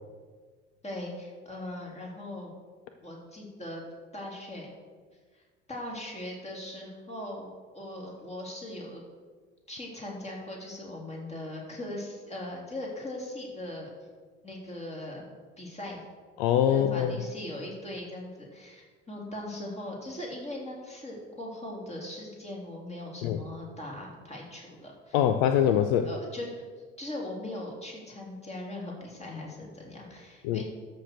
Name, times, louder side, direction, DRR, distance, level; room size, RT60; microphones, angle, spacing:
voice 1, 0.8-2.5 3.0-3.8 4.1-4.7 5.3-9.0 9.7-13.9 14.4-15.2 15.6-16.0 16.7-25.2 26.0-26.5 27.0-30.6, left 1 dB, 20° left, -2 dB, 3.3 m, -40 dB
voice 2, 16.4-17.2 23.2-23.4 25.1-26.1 30.4-30.6, left 10 dB, 60° left, 9 dB, 0.7 m, -23 dB
13.0 x 4.7 x 6.5 m, 1.5 s
figure-of-eight pair, 60°, 34 cm